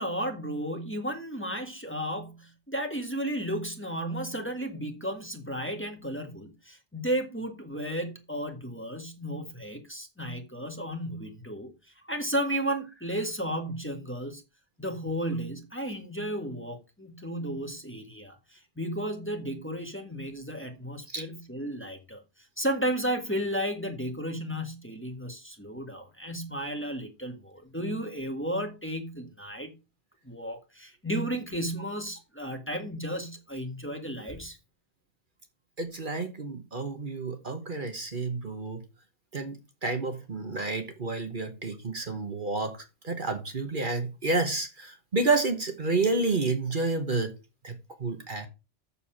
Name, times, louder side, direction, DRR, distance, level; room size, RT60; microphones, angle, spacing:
voice 1, 0.0-14.4 14.8-22.2 22.6-29.7 30.2-34.6, equal, 10° left, 1.7 m, -33 dB
voice 2, 35.8-38.8 39.3-47.3 47.6-47.7 48.0-48.5, right 3 dB, 50° right, 1.3 m, -30 dB
7.2 x 6.9 x 5.7 m
omnidirectional pair, 1.2 m